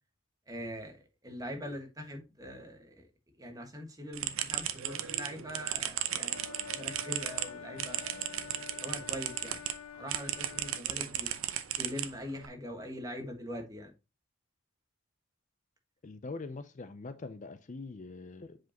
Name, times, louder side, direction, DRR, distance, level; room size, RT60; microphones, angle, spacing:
voice 1, 0.5-3.0 3.4-6.4 6.7-8.4 8.8-9.6 10.0-11.3 11.7-13.9, equal, 15° right, 1.5 m, -42 dB
sound 1, 4.1-9.7 10.1-12.5, right 11 dB, 70° right, 0.7 m, -35 dB
Wind instrument woodwind instrument, 6.3-10.9, left 7 dB, 85° left, 0.7 m, -47 dB
voice 2, 16.0-18.6, left 3 dB, 35° left, 0.5 m, -43 dB
8.0 x 5.0 x 2.9 m
head